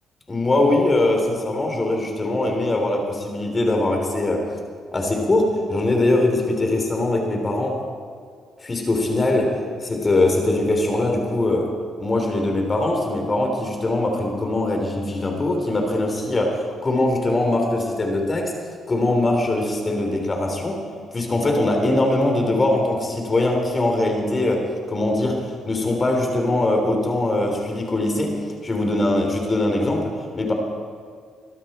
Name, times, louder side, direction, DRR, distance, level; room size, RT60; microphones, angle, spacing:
voice 1, 0.3-4.5 4.9-7.8 8.6-9.5 9.8-11.7 12.0-18.5 18.9-20.8 21.1-30.5, left 2 dB, 30° left, 2 dB, 3.6 m, -22 dB
22.5 x 12.5 x 4.4 m, 2.1 s
cardioid pair, 90°, 0 cm